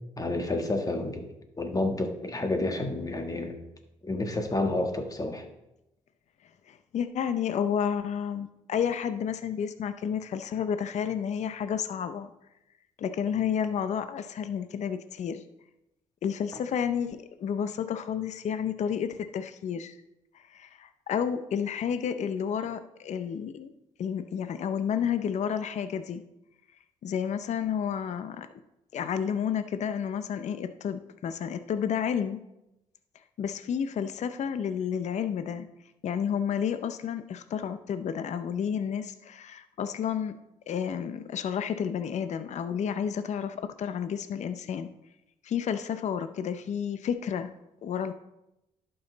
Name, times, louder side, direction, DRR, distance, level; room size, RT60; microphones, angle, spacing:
voice 1, 0.2-1.3 1.6-3.6 4.0-5.4, left 2 dB, 25° left, 5 dB, 1.5 m, -29 dB
voice 2, 6.7-12.3 13.0-15.4 16.2-20.0 20.3-23.7 24.0-26.2 27.0-28.5 28.9-32.4 33.4-35.7 36.0-40.4 40.7-44.9 45.4-47.5 47.8-48.1, left 8 dB, 60° left, 10 dB, 0.6 m, -31 dB
11.5 x 5.5 x 3.9 m, 0.91 s
cardioid pair, 70°, 13 cm